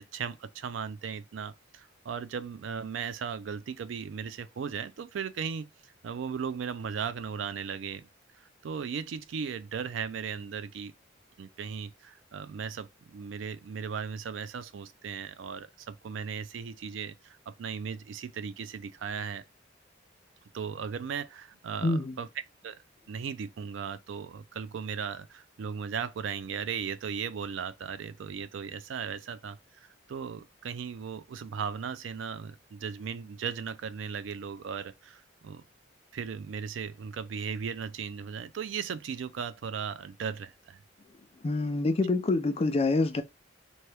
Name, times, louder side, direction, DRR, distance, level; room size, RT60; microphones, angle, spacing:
voice 1, 0.0-5.7 6.0-8.1 8.4-10.9 11.4-19.4 20.5-22.3 22.6-22.8 23.1-35.6 36.1-40.8, right 6 dB, 70° right, 0.4 m, -37 dB
voice 2, 21.8-22.1 41.4-43.2, left 2 dB, 30° left, 0.4 m, -26 dB
2.9 x 2.2 x 3.2 m
head